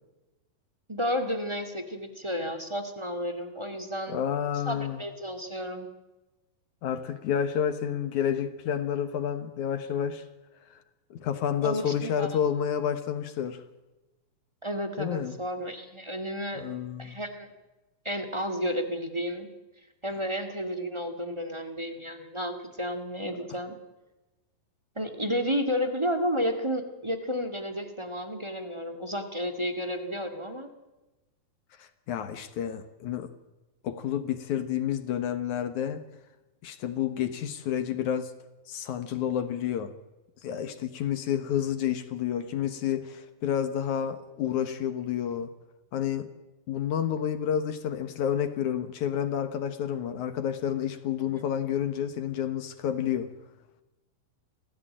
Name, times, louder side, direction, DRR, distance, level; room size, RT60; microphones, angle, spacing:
voice 1, 0.9-4.2 4.6-5.9 11.6-12.3 14.6-16.6 17.0-17.5 18.0-19.5 20.0-23.7 24.9-30.7 51.3-51.4, equal, 15° right, 1.1 m, -32 dB
voice 2, 4.1-5.0 6.8-10.2 11.1-13.6 15.0-15.4 16.6-17.2 31.8-33.3 33.8-36.0 36.6-38.3 38.7-39.9 40.4-45.5 45.9-46.3 46.7-53.3, left 9 dB, 65° left, 2.4 m, -30 dB
27.5 x 16.0 x 8.8 m
omnidirectional pair, 4.2 m